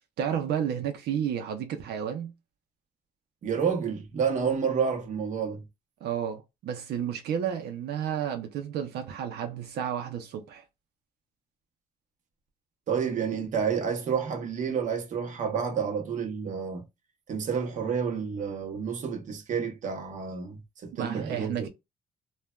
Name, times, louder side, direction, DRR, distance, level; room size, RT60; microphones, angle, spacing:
voice 1, 0.2-2.3 6.0-10.6 21.0-21.7, right 9 dB, 85° right, 0.6 m, -31 dB
voice 2, 3.4-5.6 12.9-16.9 17.3-21.7, right 6 dB, 50° right, 0.8 m, -29 dB
3.2 x 2.2 x 2.2 m
cardioid pair, 150°, 17 cm